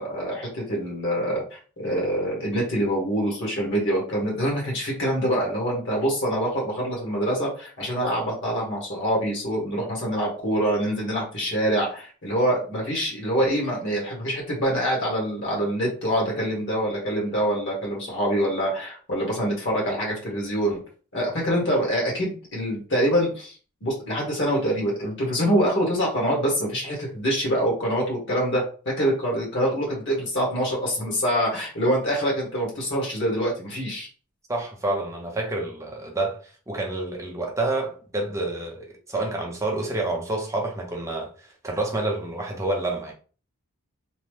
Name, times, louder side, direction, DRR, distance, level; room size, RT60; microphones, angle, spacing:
voice 1, 0.0-20.8 21.1-23.5 23.8-28.6 29.0-34.1, equal, 55° left, 1.3 m, -25 dB
voice 2, 34.5-43.1, right 2 dB, 15° right, 0.6 m, -28 dB
3.0 x 2.0 x 3.2 m
head